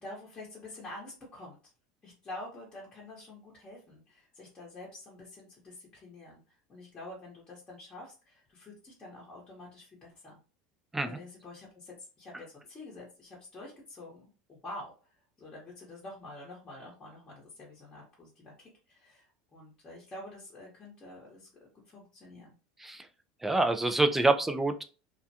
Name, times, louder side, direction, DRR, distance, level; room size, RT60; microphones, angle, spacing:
voice 1, 0.0-1.6 2.0-10.4 11.0-22.5 24.1-24.2, left 2 dB, 20° left, -6 dB, 0.9 m, -47 dB
voice 2, 23.4-24.8, right 2 dB, 10° right, 8 dB, 0.3 m, -26 dB
2.4 x 2.2 x 2.7 m, 0.34 s
supercardioid pair, 115°, 3 cm